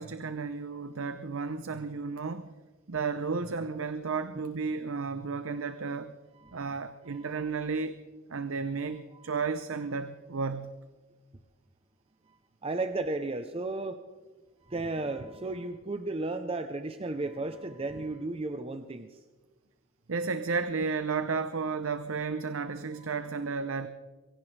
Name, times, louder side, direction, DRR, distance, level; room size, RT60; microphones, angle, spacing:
voice 1, 0.0-2.5 2.9-6.2 6.5-8.0 8.3-10.8 20.1-23.9, right 4 dB, 80° right, 11 dB, 0.7 m, -33 dB
voice 2, 6.4-6.7 7.1-7.4 12.6-14.0 14.7-19.2, right 2 dB, 30° right, 8 dB, 0.7 m, -34 dB
23.0 x 17.0 x 3.3 m, 1.3 s
head